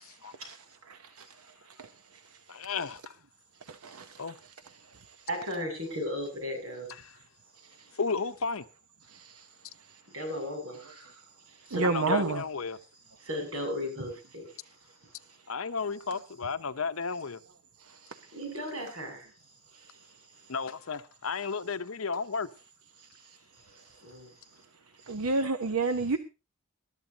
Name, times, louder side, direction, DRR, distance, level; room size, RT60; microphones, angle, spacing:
voice 1, 0.0-0.3 2.5-3.1 4.2-4.4 7.0-7.1 7.9-8.6 11.8-12.8 15.5-17.4 20.5-22.5, left 5 dB, 70° left, 0.9 m, -33 dB
voice 2, 5.3-6.9 10.1-11.1 11.7-12.3 13.2-14.4 18.3-19.3 24.0-24.3, left 1 dB, 70° right, 7.3 m, -35 dB
voice 3, 11.7-12.4 25.1-26.2, right 3 dB, 90° right, 0.9 m, -27 dB
21.5 x 12.5 x 2.9 m
head